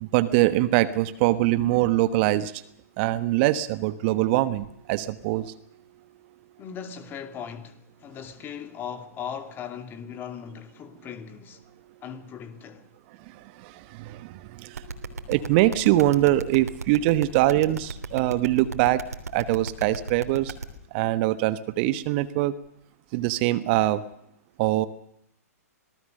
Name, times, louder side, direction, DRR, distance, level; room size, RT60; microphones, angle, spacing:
voice 1, 0.0-2.5 3.0-5.5 13.3-19.0 19.3-20.5 20.9-22.5 23.1-24.0 24.6-24.9, right 15 dB, 40° right, 1.2 m, -23 dB
voice 2, 6.6-11.6 12.0-12.9, left 8 dB, 25° left, 2.4 m, -38 dB
sound 1, 14.7-20.6, right 4 dB, 75° right, 3.2 m, -34 dB
25.5 x 18.5 x 6.6 m
figure-of-eight pair, 115°, 9 cm